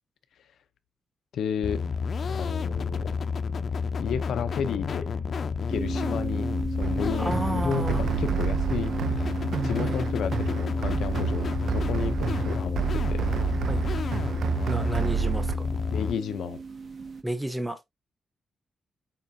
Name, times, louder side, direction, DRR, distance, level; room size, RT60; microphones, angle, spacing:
voice 1, 1.3-1.8 2.2-3.1 4.0-5.1 5.7-6.5 6.7-8.9 9.2-9.3 9.6-13.3 15.9-16.6, left 7 dB, 85° left, 0.6 m, -32 dB
sound 1, 1.6-16.1, left 5 dB, 45° left, 0.6 m, -30 dB
sound 2, 5.7-17.2, right 4 dB, 40° right, 1.0 m, -36 dB
sound 3, 6.8-15.5, right 9 dB, 70° right, 0.5 m, -30 dB
voice 2, 7.2-8.0 9.8-10.0 13.7-13.8 14.7-15.7 17.2-17.8, right 1 dB, 5° right, 0.9 m, -32 dB
7.6 x 5.0 x 2.7 m
wide cardioid pair, 155°, 0 cm